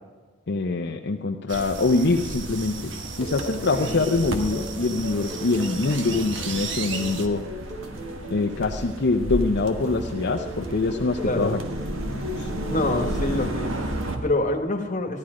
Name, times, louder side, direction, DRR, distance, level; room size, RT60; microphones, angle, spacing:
voice 1, 0.5-2.9 3.2-7.4 8.3-11.6 12.4-12.5, left 3 dB, 55° left, 2 dB, 0.6 m, -24 dB
sound 1, 1.5-7.3, right 5 dB, 60° right, 1.1 m, -36 dB
sound 2, 1.5-14.2, right 1 dB, 85° right, 1.4 m, -33 dB
sound 3, 3.1-13.1, equal, 40° right, 3.0 m, -38 dB
voice 2, 11.2-11.6 12.7-15.2, left 2 dB, 40° left, 4 dB, 1.3 m, -26 dB
14.5 x 12.0 x 4.9 m, 1.3 s
head